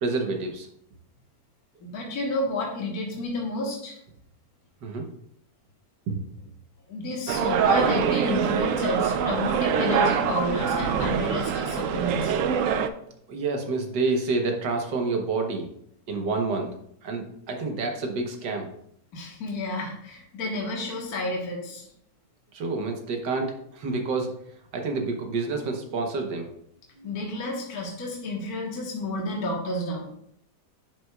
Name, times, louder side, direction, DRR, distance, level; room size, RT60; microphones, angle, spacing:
voice 1, 0.0-0.7 4.8-5.1 6.1-6.2 13.3-15.7 16.1-16.7 17.0-18.7 22.5-24.3 24.7-26.5 27.0-27.1, right 3 dB, 85° right, 4 dB, 1.8 m, -28 dB
voice 2, 1.8-4.0 6.9-12.4 19.1-21.8 27.0-30.1, left 1 dB, 60° left, -2 dB, 1.8 m, -30 dB
sound 1, 7.3-12.9, right 7 dB, 70° right, 0.7 m, -24 dB
10.0 x 6.3 x 2.3 m, 0.72 s
omnidirectional pair, 1.8 m